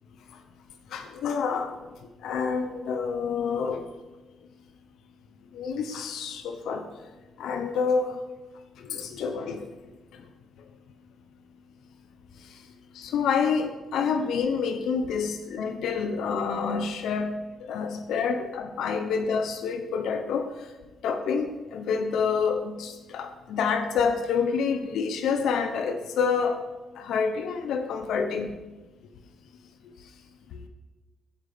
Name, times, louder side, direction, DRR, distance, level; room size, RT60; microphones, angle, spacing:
voice 1, 0.9-1.8 2.2-3.8 5.5-6.9 7.4-8.2 8.8-9.7 12.9-17.3 17.6-20.5 21.0-26.6 27.0-28.5 30.5-30.6, left 5 dB, 75° left, 7 dB, 1.0 m, -28 dB
15.0 x 5.2 x 8.5 m, 1.2 s
cardioid pair, 90°, 0 cm